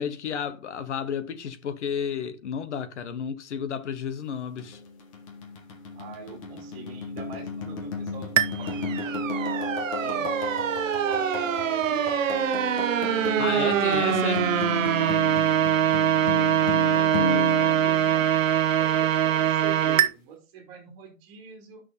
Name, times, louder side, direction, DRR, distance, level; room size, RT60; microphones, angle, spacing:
voice 1, 0.0-4.8 13.4-14.4, left 7 dB, 55° left, 1.3 m, -32 dB
sound 1, 4.6-18.8, left 3 dB, 25° left, 1.2 m, -33 dB
voice 2, 5.9-12.2 13.6-14.5 16.2-18.3 18.8-21.8, right 5 dB, 25° right, 3.1 m, -44 dB
sound 2, 8.4-20.1, right 10 dB, 65° right, 1.2 m, -23 dB
10.0 x 6.4 x 4.1 m
hypercardioid pair, 175°, 41 cm